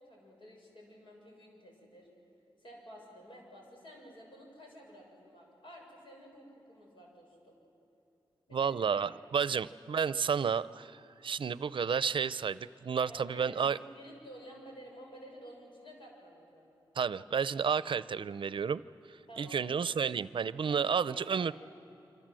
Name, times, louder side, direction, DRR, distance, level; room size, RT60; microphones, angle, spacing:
voice 1, 0.0-2.1 2.6-7.6 8.5-9.0 13.1-16.7 19.3-19.6 20.7-21.5, equal, 70° left, 0 dB, 6.8 m, -52 dB
voice 2, 8.5-13.8 17.0-18.8 19.1-21.5, right 6 dB, 70° right, 17 dB, 0.6 m, -31 dB
27.0 x 26.0 x 7.7 m, 3.0 s
wide cardioid pair, 125°, 9 cm